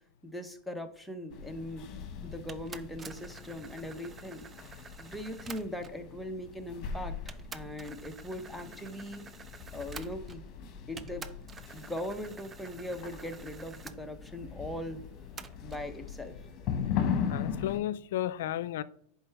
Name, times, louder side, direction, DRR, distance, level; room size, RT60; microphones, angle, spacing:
voice 1, 0.2-1.9 2.2-9.2 9.7-11.3 11.7-15.0 15.6-16.4, left 1 dB, ahead, 0.9 m, -40 dB
sound 1, 1.3-17.8, left 7 dB, 40° left, 1.2 m, -39 dB
sound 2, 2.5-6.1 6.8-6.9 7.3-10.6 11.0-14.0 15.4-15.9, right 5 dB, 20° right, 0.5 m, -49 dB
voice 2, 17.3-18.8, left 12 dB, 75° left, 0.5 m, -33 dB
10.5 x 4.5 x 3.5 m
supercardioid pair, 135°, 0 cm